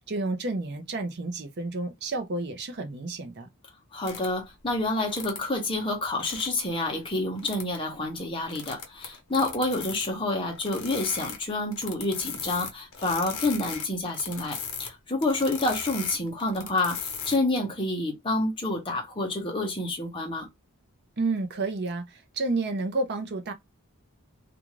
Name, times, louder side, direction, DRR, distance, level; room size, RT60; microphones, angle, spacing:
voice 1, 0.1-3.5 21.2-23.5, right 3 dB, 50° right, 0.6 m, -30 dB
voice 2, 3.9-17.0 17.3-20.5, left 2 dB, 25° left, 0.8 m, -28 dB
sound 1, 4.0-4.3 5.1-5.4 6.0-6.5 7.4-7.7 8.5-10.1 10.5-11.4 11.7-14.9 15.2-17.6, left 6 dB, 65° left, 0.8 m, -37 dB
2.5 x 2.4 x 3.0 m
head